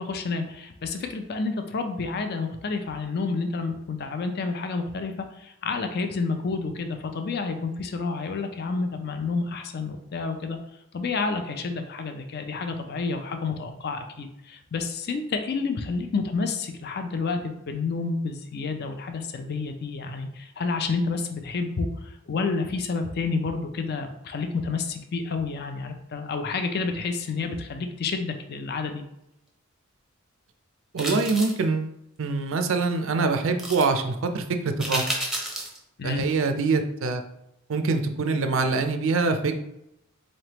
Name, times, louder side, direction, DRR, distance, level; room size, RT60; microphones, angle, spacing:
voice 1, 0.0-10.6 10.9-29.0 36.0-36.3, left 4 dB, 50° left, 6 dB, 0.4 m, -29 dB
voice 2, 30.9-31.9 32.2-34.4 34.8-35.1 36.0-37.2 37.7-39.6, right 4 dB, 65° right, 7 dB, 0.4 m, -24 dB
sound 1, 31.0-31.6 33.6-33.9 34.8-35.8 36.2-36.3, right 1 dB, ahead, 0.6 m, -31 dB
4.0 x 3.3 x 2.9 m, 0.82 s
head